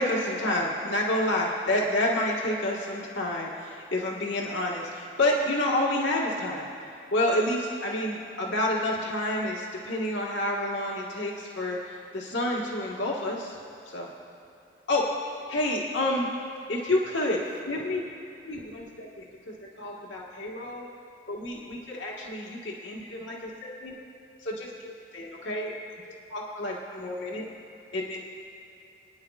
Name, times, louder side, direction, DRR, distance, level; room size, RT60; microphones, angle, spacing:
voice 1, 0.0-6.7 7.1-11.8 12.1-13.6 13.9-14.1 14.9-15.0 15.5-16.3 16.7-18.0 18.4-20.9 21.3-24.0 24.4-25.7 26.3-27.4 27.9-28.2, left 1 dB, 80° left, -3 dB, 1.5 m, -29 dB
26.0 x 10.0 x 2.4 m, 2.8 s
head